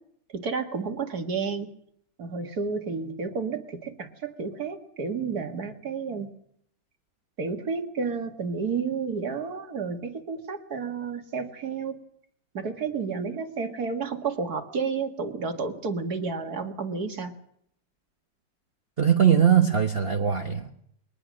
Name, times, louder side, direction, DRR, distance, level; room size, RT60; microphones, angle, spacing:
voice 1, 0.3-1.7 2.2-6.3 7.4-12.0 12.5-17.3, right 5 dB, 55° right, 6 dB, 2.4 m, -31 dB
voice 2, 19.0-20.7, right 8 dB, 35° right, 5 dB, 1.3 m, -21 dB
22.5 x 19.5 x 6.4 m, 0.69 s
omnidirectional pair, 2.1 m